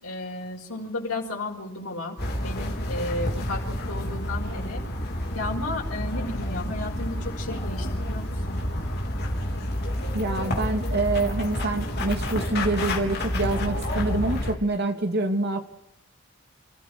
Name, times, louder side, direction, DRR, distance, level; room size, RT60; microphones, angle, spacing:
voice 1, 0.0-2.2 2.4-4.8 5.3-8.6, left 2 dB, 85° left, -2 dB, 5.2 m, -33 dB
sound 1, 2.2-14.5, left 1 dB, 50° left, 4.1 m, -29 dB
voice 2, 10.1-15.6, right 2 dB, 50° right, 5 dB, 2.6 m, -26 dB
29.0 x 14.5 x 6.3 m, 0.82 s
head